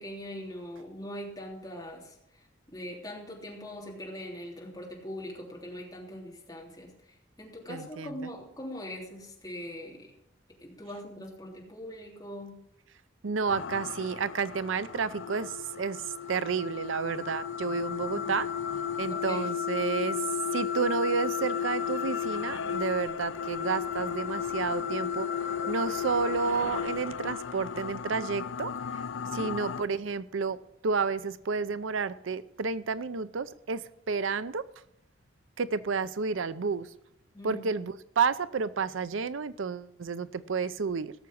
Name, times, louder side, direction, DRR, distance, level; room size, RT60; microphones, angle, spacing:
voice 1, 0.0-10.1 10.6-12.6 18.1-18.3 19.1-19.4 29.2-29.5 37.3-37.8, equal, 20° left, -2 dB, 3.1 m, -42 dB
voice 2, 7.7-8.1 13.2-18.5 19.0-20.2 20.5-25.3 25.7-29.0 29.3-30.6 30.8-34.6 35.6-36.9 37.4-41.1, right 5 dB, 85° right, 15 dB, 0.6 m, -31 dB
sound 1, 13.5-29.8, left 8 dB, 75° left, 0.5 m, -34 dB
17.5 x 7.0 x 6.3 m, 0.78 s
head